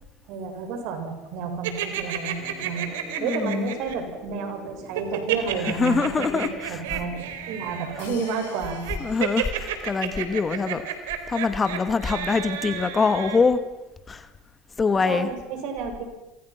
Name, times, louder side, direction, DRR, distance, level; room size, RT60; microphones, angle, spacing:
voice 1, 0.3-2.9 3.2-7.1 7.5-8.8 15.1-16.0, right 5 dB, 65° right, 5 dB, 6.6 m, -31 dB
sound 1, 1.6-3.9 4.9-13.4, right 11 dB, 80° right, 3.8 m, -31 dB
sound 2, 2.4-8.3, left 1 dB, 15° right, 5.8 m, -46 dB
voice 2, 3.2-3.7 5.8-6.8 9.0-10.8 11.3-13.6 14.1-14.3 14.8-15.3, left 4 dB, 20° left, 10 dB, 2.1 m, -24 dB
sound 3, 8.0-10.3, left 9 dB, 80° left, 5.3 m, -49 dB
28.0 x 26.0 x 6.0 m, 1.0 s
hypercardioid pair, 95°, 0 cm